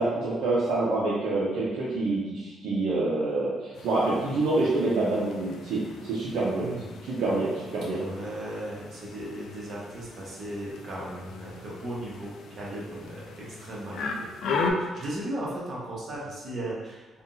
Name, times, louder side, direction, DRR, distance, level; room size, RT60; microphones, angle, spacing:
voice 1, 0.0-6.7 7.1-8.0, right 2 dB, 80° right, -7 dB, 0.6 m, -27 dB
sound 1, 3.7-14.7, left 4 dB, 75° left, 0.3 m, -38 dB
voice 2, 6.6-6.9 7.9-17.2, right 1 dB, 55° right, -5 dB, 1.0 m, -37 dB
3.6 x 2.3 x 2.6 m, 1.2 s
cardioid pair, 90°, 0 cm